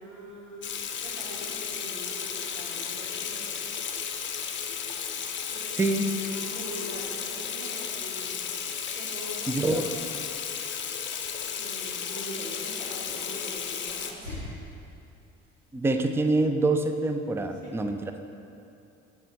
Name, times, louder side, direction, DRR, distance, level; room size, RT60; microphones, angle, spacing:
voice 1, 0.0-3.6 5.5-8.4 8.9-9.9 11.5-14.6 17.4-17.8, right 1 dB, 90° right, -4 dB, 1.0 m, -42 dB
Water tap faucet / Sink (filling or washing), 0.6-14.1, left 7 dB, 30° left, 0.7 m, -34 dB
voice 2, 9.5-9.9 15.7-18.0, right 2 dB, 5° right, 7 dB, 0.4 m, -25 dB
11.0 x 4.7 x 4.0 m, 2.7 s
figure-of-eight pair, 50°, 36 cm